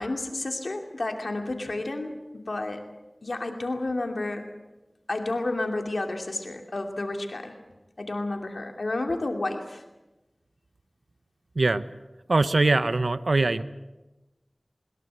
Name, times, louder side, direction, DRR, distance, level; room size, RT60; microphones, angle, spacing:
voice 1, 0.0-2.8 3.2-4.5 5.1-7.5 8.0-9.8, left 2 dB, 85° left, 4 dB, 2.4 m, -31 dB
voice 2, 12.3-13.6, right 3 dB, 90° right, 12 dB, 0.8 m, -22 dB
21.5 x 20.5 x 8.0 m, 1.1 s
wide cardioid pair, 50°, 0 cm